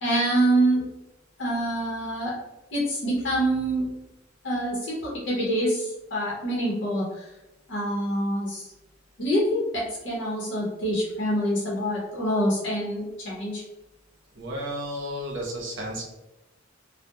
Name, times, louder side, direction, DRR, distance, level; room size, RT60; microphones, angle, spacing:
voice 1, 0.0-0.8 1.4-2.3 2.7-3.9 4.4-7.3 7.7-8.7 9.2-13.6, right 1 dB, 65° left, -5 dB, 0.7 m, -26 dB
voice 2, 14.3-16.0, equal, 70° right, -1 dB, 0.7 m, -32 dB
2.8 x 2.0 x 2.2 m, 0.99 s
head